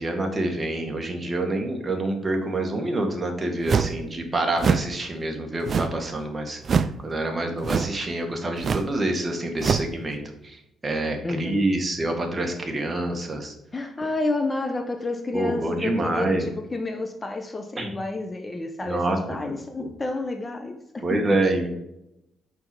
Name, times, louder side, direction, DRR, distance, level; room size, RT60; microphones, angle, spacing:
voice 1, 0.0-13.5 15.3-16.5 17.8-17.9 18.8-19.2 19.8-19.9 21.0-21.7, right 2 dB, 25° right, 3 dB, 1.8 m, -27 dB
sound 1, 3.7-4.0 4.6-4.9 5.7-6.1 6.6-7.0 7.6-8.0 8.6-8.9 9.6-9.9, right 6 dB, 50° right, 0.4 m, -24 dB
voice 2, 11.2-11.6 13.7-21.4, left 2 dB, 25° left, 6 dB, 0.8 m, -30 dB
6.0 x 5.7 x 5.3 m, 0.85 s
cardioid pair, 90°, 0 cm